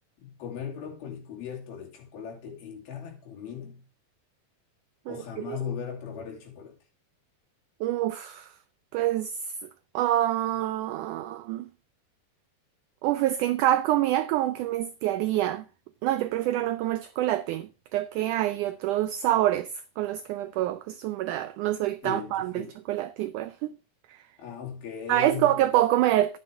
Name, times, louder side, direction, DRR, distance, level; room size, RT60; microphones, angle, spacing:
voice 1, 0.2-3.9 5.1-6.8 22.0-22.7 24.4-25.6, left 7 dB, 80° left, 4.7 m, -38 dB
voice 2, 5.1-5.6 7.8-8.5 8.9-9.4 9.9-11.7 13.0-15.7 16.0-23.8 24.1-24.2 25.1-26.4, right 14 dB, 90° right, 1.7 m, -26 dB
11.0 x 9.8 x 3.4 m
omnidirectional pair, 4.3 m